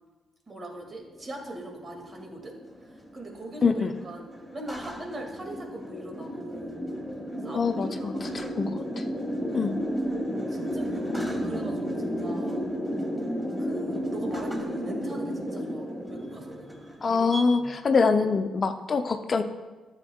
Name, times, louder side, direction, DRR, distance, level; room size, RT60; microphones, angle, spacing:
voice 1, 0.5-6.8 7.4-8.9 9.5-9.7 10.5-12.6 13.6-16.7 17.1-17.3 17.6-17.7, right 1 dB, 40° right, 2 dB, 2.1 m, -41 dB
sound 1, 1.1-17.4, equal, 5° right, 2.0 m, -33 dB
voice 2, 3.6-3.9 7.5-8.7 9.5-9.7 17.0-19.4, left 4 dB, 45° left, 7 dB, 0.6 m, -24 dB
13.0 x 7.2 x 2.3 m, 1.2 s
hypercardioid pair, 40°, 0 cm